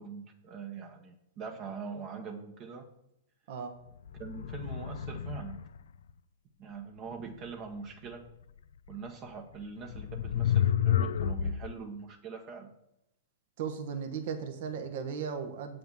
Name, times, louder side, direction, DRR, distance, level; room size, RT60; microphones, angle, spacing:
voice 1, 0.0-2.9 4.2-5.7 6.6-8.3 8.9-12.7, right 5 dB, 40° right, 3 dB, 1.2 m, -43 dB
sound 1, 4.1-5.8 8.9-9.0 9.9-11.7, left 9 dB, 75° left, 0.4 m, -30 dB
voice 2, 13.6-15.8, right 6 dB, 60° right, 6 dB, 1.3 m, -36 dB
8.1 x 5.7 x 7.0 m, 0.81 s
hypercardioid pair, 115°, 0 cm